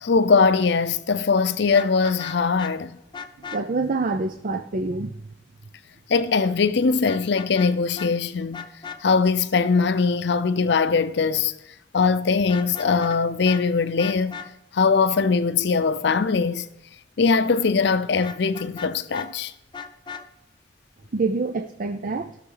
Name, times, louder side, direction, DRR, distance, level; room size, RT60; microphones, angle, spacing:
voice 1, 0.0-3.0 6.1-8.6 9.0-11.5 11.9-14.4 14.7-16.7 17.2-19.5, left 5 dB, 65° left, 0.6 m, -21 dB
Vehicle horn car horn honking, 1.7-2.7 3.1-3.6 7.1-7.7 8.0-8.1 8.5-9.0 12.4-13.2 13.4-13.6 14.0-14.5 18.2-19.3 19.7-20.2, left 6 dB, 25° left, 0.7 m, -36 dB
voice 2, 3.5-5.2 21.1-22.4, right 3 dB, 50° right, 0.5 m, -26 dB
14.5 x 6.5 x 3.9 m
head